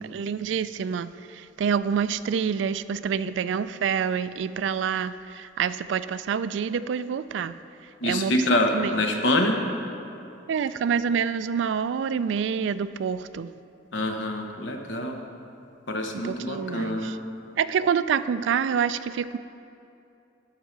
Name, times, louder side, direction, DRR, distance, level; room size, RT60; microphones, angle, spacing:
voice 1, 0.0-7.6 8.0-8.9 10.5-13.5 16.1-17.2 17.6-19.4, right 7 dB, 75° right, 14 dB, 0.3 m, -27 dB
voice 2, 8.0-9.6 13.9-15.2 15.9-17.1, left 1 dB, 75° left, 3 dB, 1.0 m, -25 dB
11.5 x 4.8 x 7.1 m, 2.7 s
head